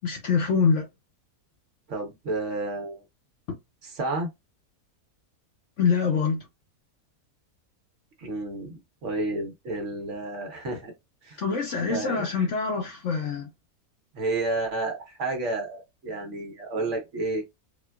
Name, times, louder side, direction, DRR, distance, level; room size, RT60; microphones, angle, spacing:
voice 1, 0.0-0.9 3.5-3.6 5.8-6.5 11.4-13.5, left 5 dB, 60° left, 0.9 m, -25 dB
voice 2, 1.9-3.0 3.8-4.3 8.2-10.9 11.2-11.4 11.9-12.2 14.1-17.4, right 2 dB, 55° right, 1.1 m, -31 dB
4.2 x 2.2 x 2.2 m
omnidirectional pair, 1.6 m